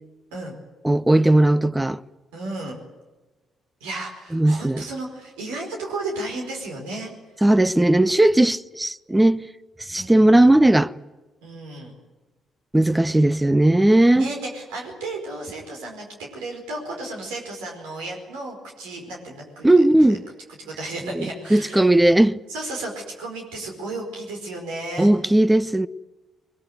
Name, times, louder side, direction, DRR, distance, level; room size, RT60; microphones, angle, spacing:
voice 1, 0.8-2.0 4.3-4.8 7.4-9.5 9.9-10.9 12.7-14.3 19.6-20.2 21.2-22.4 25.0-25.9, right 1 dB, 10° right, 0.8 m, -17 dB
voice 2, 2.3-2.8 3.8-7.1 10.0-10.2 11.4-11.9 14.1-19.6 20.1-20.2 20.6-22.2 22.5-22.9 23.2-25.1, right 2 dB, 75° right, 4.9 m, -33 dB
22.0 x 21.5 x 9.5 m
hypercardioid pair, 45°, 0 cm